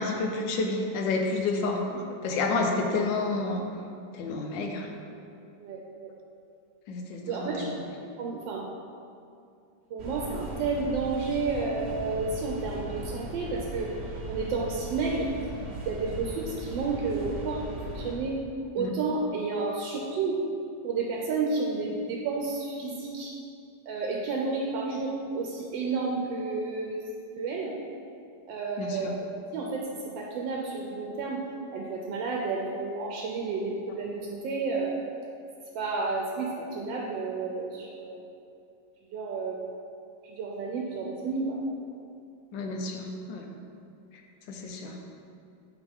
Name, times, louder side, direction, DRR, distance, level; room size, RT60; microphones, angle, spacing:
voice 1, 0.0-1.9 2.2-3.6 4.1-4.9 6.9-7.8 18.8-18.9 28.8-29.2 42.5-43.5 44.5-45.0, left 3 dB, 85° left, 2 dB, 1.4 m, -30 dB
voice 2, 5.6-6.1 7.2-7.7 8.0-8.6 9.9-13.9 14.3-17.6 17.9-18.4 18.7-20.4 20.8-23.3 23.9-27.0 27.4-27.7 28.5-29.1 29.5-29.9 30.2-31.4 31.7-34.9 35.7-38.3 39.1-39.6 40.2-41.6, right 4 dB, 85° right, -1 dB, 1.3 m, -31 dB
sound 1, 10.0-18.2, right 1 dB, 55° right, 0.8 m, -38 dB
8.1 x 3.6 x 3.6 m, 2.5 s
omnidirectional pair, 2.0 m